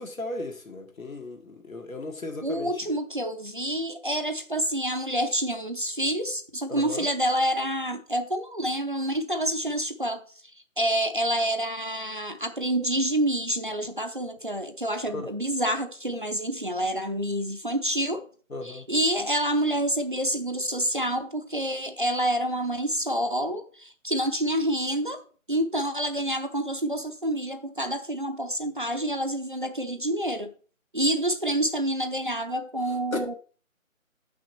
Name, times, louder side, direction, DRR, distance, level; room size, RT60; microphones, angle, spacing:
voice 1, 0.0-2.7 6.7-7.1 15.1-15.3 18.5-18.8 33.1-33.2, left 2 dB, 80° left, 2.1 m, -35 dB
voice 2, 2.4-10.2 10.8-18.3 18.6-25.2 25.5-30.5 30.9-33.3, right 1 dB, 40° right, 0.6 m, -28 dB
8.4 x 6.0 x 4.3 m
figure-of-eight pair, 175°, 41 cm